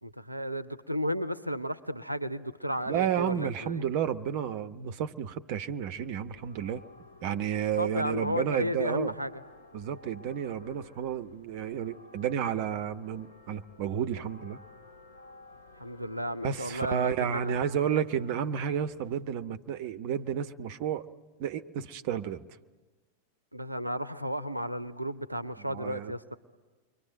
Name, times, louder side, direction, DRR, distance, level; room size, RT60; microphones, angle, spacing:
voice 1, 0.0-3.8 7.7-9.3 15.8-17.7 23.5-26.4, equal, 85° right, 13 dB, 0.8 m, -33 dB
voice 2, 2.9-6.8 7.2-9.1 9.7-14.6 16.4-21.1 21.4-22.4 25.7-26.1, right 9 dB, 45° right, 12 dB, 0.9 m, -31 dB
sound 1, 5.8-19.2, left 2 dB, 75° left, 2.7 m, -54 dB
29.5 x 23.5 x 7.9 m, 1.3 s
figure-of-eight pair, 90°, 0 cm